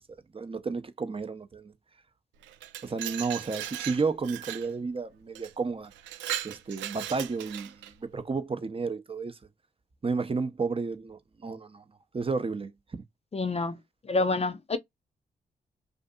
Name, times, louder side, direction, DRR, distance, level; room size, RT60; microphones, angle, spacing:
voice 1, 0.3-1.7 2.8-5.9 6.4-7.7 8.0-9.4 10.0-11.8 12.1-12.7, right 4 dB, 30° right, 0.6 m, -32 dB
Glass, 2.4-4.7 5.4-5.5 5.9-7.9, right 12 dB, 80° right, 0.4 m, -37 dB
voice 2, 13.3-13.8 14.1-14.8, left 3 dB, 35° left, 0.5 m, -27 dB
2.6 x 2.4 x 2.2 m
hypercardioid pair, 40°, 19 cm